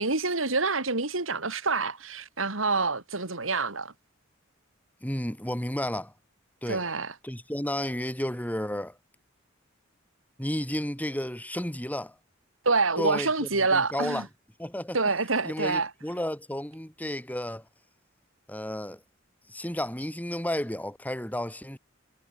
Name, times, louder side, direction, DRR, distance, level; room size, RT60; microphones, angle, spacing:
voice 1, 0.0-3.9 6.7-7.1 12.6-14.3 14.9-15.9, right 3 dB, 90° right, 3.5 m, -27 dB
voice 2, 5.0-6.1 6.6-6.8 7.2-9.0 10.4-12.1 13.0-14.2 14.6-15.0 15.4-17.6 18.5-19.0 19.5-21.8, left 1 dB, 10° left, 6.3 m, -32 dB
head